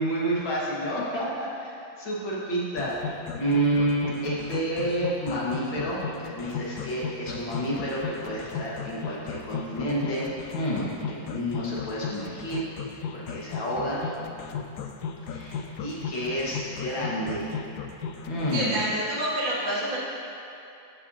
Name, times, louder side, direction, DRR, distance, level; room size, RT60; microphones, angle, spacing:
voice 1, 0.0-1.7 2.0-3.0 3.3-14.0 15.3-17.5 18.3-18.8, right 1 dB, 90° left, -6 dB, 2.4 m, -29 dB
sound 1, 2.8-18.7, left 6 dB, 70° left, 1.0 m, -35 dB
voice 2, 18.5-20.0, right 1 dB, 85° right, -6 dB, 2.6 m, -27 dB
13.5 x 7.3 x 2.8 m, 2.6 s
omnidirectional pair, 2.0 m